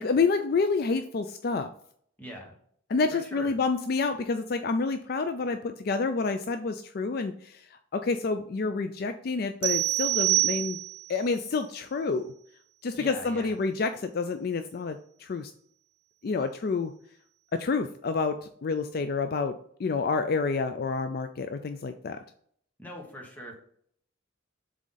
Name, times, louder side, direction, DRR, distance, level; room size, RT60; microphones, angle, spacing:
voice 1, 0.0-1.7 2.9-10.8 11.1-12.3 12.8-15.5 16.2-16.9 17.5-22.2, left 4 dB, 50° left, 8 dB, 0.3 m, -28 dB
voice 2, 2.2-2.5 3.1-3.5 12.9-13.6 22.8-23.5, equal, 10° left, 0 dB, 1.4 m, -42 dB
sound 1, 9.6-11.2, right 17 dB, 55° right, 0.5 m, -26 dB
7.4 x 3.6 x 3.9 m, 0.64 s
head